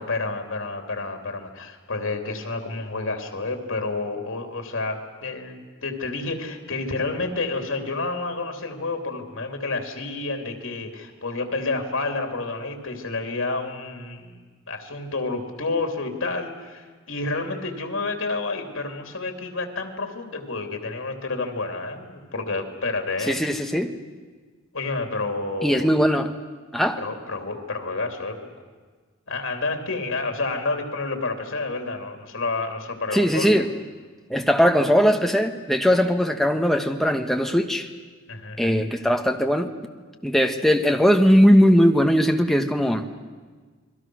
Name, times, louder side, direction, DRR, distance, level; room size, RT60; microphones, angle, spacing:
voice 1, 0.0-23.4 24.7-25.9 27.0-28.4 29.3-33.5 38.3-38.8, left 3 dB, 85° left, 4 dB, 3.1 m, -29 dB
voice 2, 23.3-23.9 25.6-26.3 26.7-27.0 33.1-33.7 34.3-37.9 38.6-39.7 40.2-43.1, equal, ahead, 4 dB, 1.2 m, -19 dB
29.0 x 22.0 x 6.3 m, 1.5 s
head